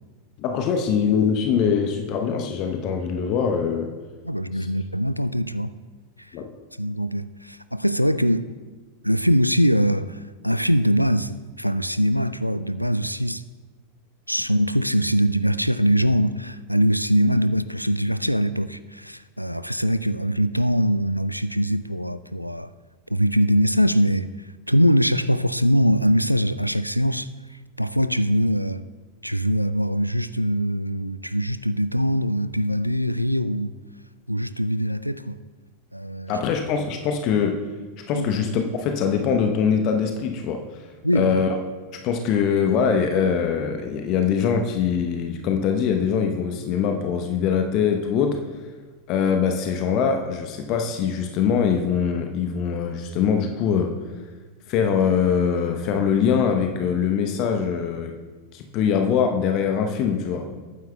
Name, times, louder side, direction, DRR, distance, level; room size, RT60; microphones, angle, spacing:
voice 1, 0.4-3.9 4.6-4.7 6.3-6.5 36.3-37.6 38.1-40.8 41.1-41.6 42.0-48.4 49.1-53.9 54.7-58.1 58.5-60.5, left 7 dB, 40° left, 5 dB, 0.8 m, -23 dB
voice 2, 4.2-5.7 6.2-6.3 6.8-8.5 9.0-13.4 14.3-22.7 23.1-24.3 24.7-27.3 27.8-28.8 29.2-33.8 34.3-35.4 35.9-36.4 38.1-38.3 41.0-41.4, equal, 90° left, 14 dB, 0.3 m, -22 dB
18.5 x 9.2 x 2.3 m, 1.3 s
figure-of-eight pair, 90°, 0 cm